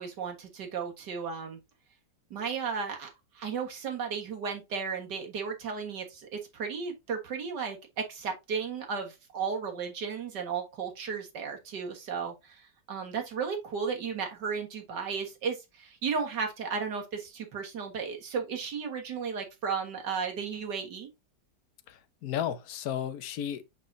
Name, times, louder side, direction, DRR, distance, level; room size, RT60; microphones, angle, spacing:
voice 1, 0.0-1.6 2.3-3.1 3.3-21.1, right 6 dB, 65° right, 2.1 m, -34 dB
voice 2, 21.9-23.6, left 10 dB, 60° left, 1.2 m, -34 dB
6.0 x 5.9 x 2.7 m
omnidirectional pair, 2.0 m